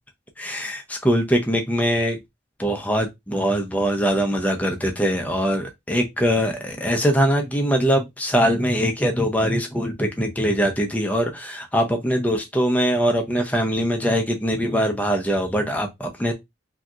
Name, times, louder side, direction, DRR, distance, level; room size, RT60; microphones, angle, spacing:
voice 1, 0.4-2.2 2.6-16.3, equal, 10° left, 0.6 m, -22 dB
3.5 x 2.7 x 2.4 m
head